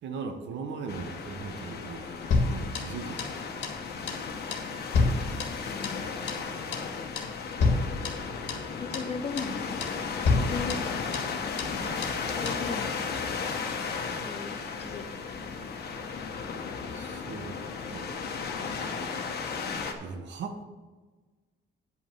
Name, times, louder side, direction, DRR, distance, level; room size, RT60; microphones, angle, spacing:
voice 1, 0.0-2.2 2.5-3.7 16.9-18.2 20.0-20.6, right 5 dB, 70° right, 1.1 m, -39 dB
sound 1, 0.9-19.9, left 5 dB, 60° left, 1.2 m, -35 dB
sound 2, 2.3-3.4 3.6-3.8 4.1-4.3 4.5-6.0 6.3-6.5 6.7-6.9 7.2-7.3 7.6-8.7 8.9-9.1 9.4-9.6 9.8-10.0 10.2-11.3 11.6-11.8 12.0-12.2 12.5-12.6, left 3 dB, 75° left, 1.7 m, -29 dB
voice 2, 5.7-6.0 6.8-7.1 8.8-11.3 12.4-13.3 14.1-15.1 15.5-15.6, left 5 dB, 35° left, 0.7 m, -38 dB
9.6 x 5.8 x 6.7 m
cardioid pair, 165°, 19 cm